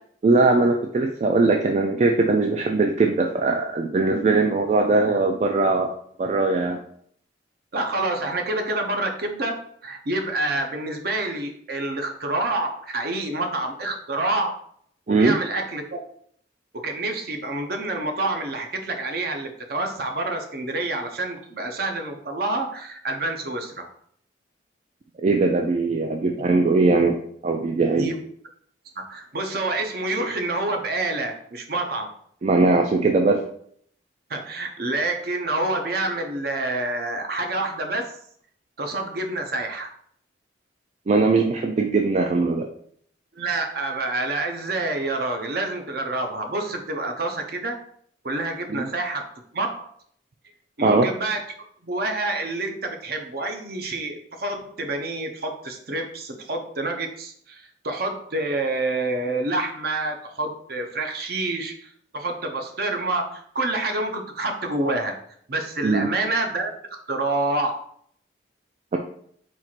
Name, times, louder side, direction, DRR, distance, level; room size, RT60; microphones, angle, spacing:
voice 1, 0.2-5.9 6.2-6.8 15.1-15.3 25.2-28.1 32.4-33.4 41.1-42.7 48.7-48.9 50.8-51.1 65.8-66.1, right 3 dB, 40° right, 3 dB, 0.3 m, -20 dB
voice 2, 7.7-14.6 15.1-15.8 16.7-23.9 28.0-28.2 29.0-32.1 34.3-38.1 38.8-39.9 43.4-47.8 48.2-49.3 49.5-49.9 50.8-51.4 51.8-65.1 65.5-66.7 67.1-67.8, right 2 dB, 55° right, 4 dB, 0.7 m, -27 dB
4.4 x 2.4 x 4.3 m, 0.64 s
head